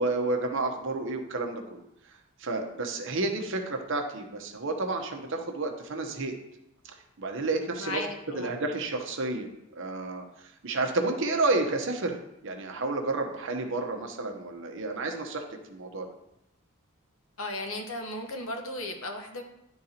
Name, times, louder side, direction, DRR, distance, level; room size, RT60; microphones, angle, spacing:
voice 1, 0.0-1.8 2.4-6.4 6.8-8.0 8.3-9.5 9.8-12.1 12.4-16.1, right 2 dB, 60° right, 3 dB, 0.9 m, -30 dB
voice 2, 7.8-8.5 17.4-19.4, left 1 dB, 70° left, 3 dB, 1.0 m, -35 dB
11.0 x 3.8 x 2.9 m, 0.85 s
head